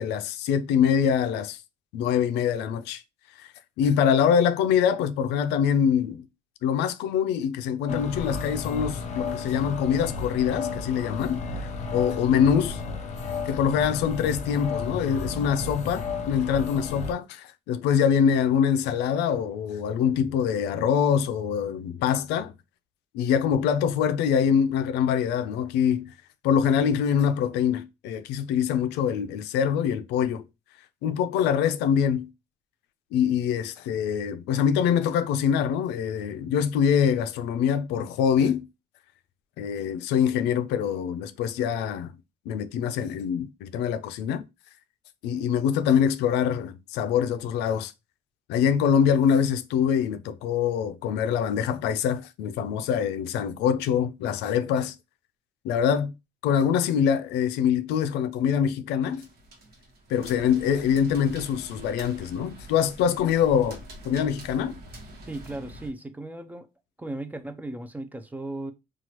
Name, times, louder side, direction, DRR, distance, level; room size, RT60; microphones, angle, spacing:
voice 1, 0.0-1.6 1.9-3.0 3.4-3.5 3.8-6.3 6.6-12.8 13.5-22.5 23.1-26.1 26.4-30.4 31.0-32.3 33.1-38.6 39.6-42.1 42.5-44.4 45.2-47.9 48.5-55.0 55.6-56.1 56.4-59.3 60.1-64.8, left 8 dB, 85° left, 0.4 m, -24 dB
sound 1, 7.9-17.1, left 4 dB, 45° left, 0.6 m, -33 dB
sound 2, 59.0-65.9, right 1 dB, 70° right, 1.1 m, -45 dB
voice 2, 65.3-66.7 67.0-68.7, right 2 dB, 10° right, 0.4 m, -36 dB
3.0 x 2.3 x 2.9 m
cardioid pair, 110°, 17 cm